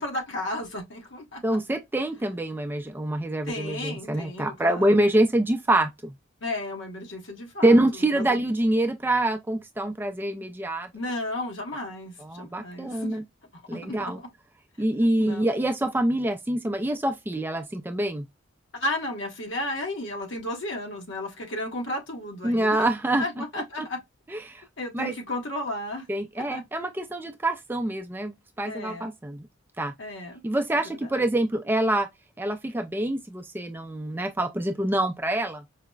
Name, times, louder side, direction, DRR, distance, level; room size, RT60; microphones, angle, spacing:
voice 1, 0.0-1.6 3.5-4.9 6.4-7.8 8.1-8.4 10.9-13.2 13.7-14.3 15.2-15.5 18.7-22.9 23.2-24.0 24.8-26.0 26.4-26.6 28.7-29.1 30.0-30.3 31.0-31.1, left 1 dB, 70° left, 1.1 m, -33 dB
voice 2, 1.4-6.1 7.6-10.9 12.2-13.2 13.7-14.2 14.8-18.3 22.4-23.2 23.6-23.9 24.3-24.6 24.9-25.1 26.1-29.5 29.8-29.9 30.4-32.1 32.4-35.6, right 1 dB, 10° right, 0.3 m, -25 dB
4.8 x 2.1 x 2.2 m
head